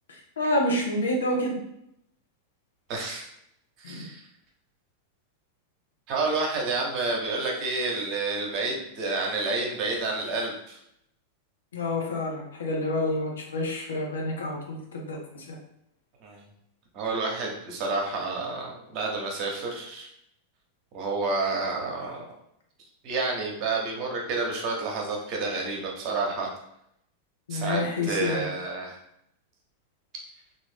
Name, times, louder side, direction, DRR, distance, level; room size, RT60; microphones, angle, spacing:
voice 1, 0.1-1.6 3.8-4.0 11.7-15.5 27.5-28.4, left 1 dB, 65° left, 0 dB, 0.8 m, -28 dB
voice 2, 2.9-3.3 3.8-4.2 6.1-10.8 16.2-16.4 16.9-20.1 20.9-22.3 23.0-26.5 27.5-29.0, right 3 dB, 40° right, 0 dB, 0.9 m, -29 dB
3.6 x 2.5 x 3.4 m, 0.76 s
figure-of-eight pair, 90°, 0 cm